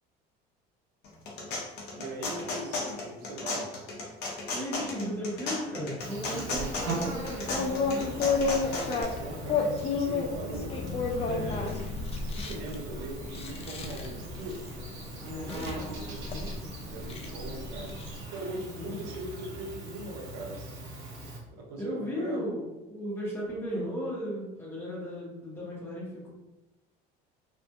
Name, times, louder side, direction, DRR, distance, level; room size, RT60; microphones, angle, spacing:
sound 1, 1.0-9.0, left 3 dB, 55° left, 0.7 m, -35 dB
voice 1, 1.9-3.7 6.2-6.7 8.6-10.8 11.2-11.8 12.1-14.6 16.9-18.0 18.3-20.8 21.5-22.4, right 2 dB, 80° right, 2 dB, 0.6 m, -40 dB
voice 2, 4.5-8.4 15.2-16.7 18.7-19.0 21.8-26.3, equal, 10° left, -6 dB, 1.1 m, -36 dB
Insect, 6.0-21.4, right 2 dB, 65° right, 1.1 m, -41 dB
sound 2, 6.5-18.2, left 4 dB, 30° left, 0.4 m, -33 dB
2.5 x 2.4 x 2.3 m, 1.0 s
supercardioid pair, 100°, 20 cm